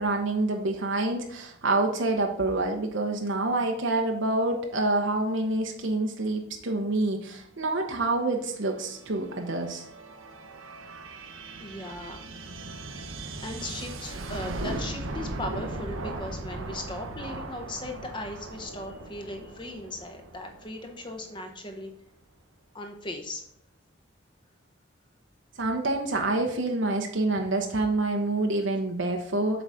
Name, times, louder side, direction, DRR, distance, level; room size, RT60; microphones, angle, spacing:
voice 1, 0.0-9.9 25.6-29.6, right 2 dB, 70° right, 3 dB, 0.9 m, -27 dB
sound 1, 8.1-21.6, right 2 dB, 90° right, 1.0 m, -39 dB
voice 2, 11.6-12.3 13.0-21.9 22.7-23.5, left 1 dB, 25° left, 4 dB, 0.9 m, -38 dB
7.7 x 4.0 x 6.3 m, 0.67 s
head